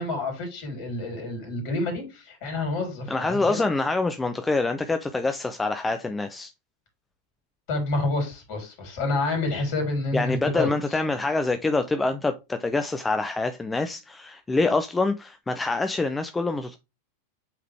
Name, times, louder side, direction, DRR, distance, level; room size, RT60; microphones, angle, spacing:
voice 1, 0.0-3.7 7.7-10.7, left 2 dB, 45° left, 3.4 m, -28 dB
voice 2, 3.1-6.5 10.1-16.8, left 3 dB, 10° left, 0.5 m, -26 dB
8.4 x 3.8 x 3.4 m
figure-of-eight pair, 90°, 0 cm